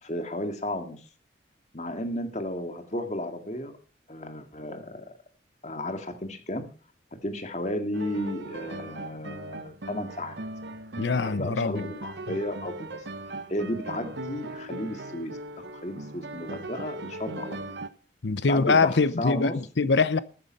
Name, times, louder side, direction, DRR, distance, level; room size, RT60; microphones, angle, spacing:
voice 1, 0.0-1.0 1.7-3.8 4.1-5.2 5.6-6.7 7.2-10.3 11.1-12.9 13.3-17.6 18.5-19.6, left 1 dB, 40° left, 2.0 m, -33 dB
sound 1, 7.9-17.9, right 1 dB, 75° right, 1.0 m, -39 dB
voice 2, 11.0-11.9 18.2-20.2, left 4 dB, 80° left, 0.7 m, -23 dB
14.0 x 9.6 x 5.4 m
head